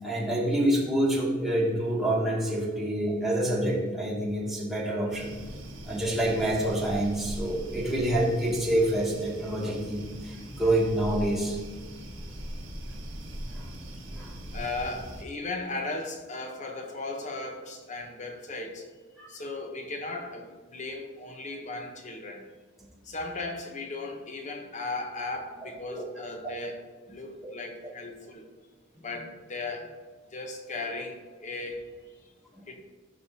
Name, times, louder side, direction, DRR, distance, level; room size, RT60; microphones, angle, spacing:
voice 1, 0.0-5.3 5.8-11.6 13.5-13.7 14.1-14.3 19.2-19.3 25.9-26.0 28.9-29.1, right 1 dB, ahead, -7 dB, 2.3 m, -27 dB
sound 1, 5.1-15.2, equal, 65° right, 1.6 m, -40 dB
voice 2, 14.5-18.9 19.3-22.5 23.0-26.8 27.1-28.5 29.0-29.9 30.3-31.8 32.7-32.8, left 2 dB, 35° left, 3 dB, 0.9 m, -36 dB
14.5 x 5.6 x 2.8 m, 1.4 s
head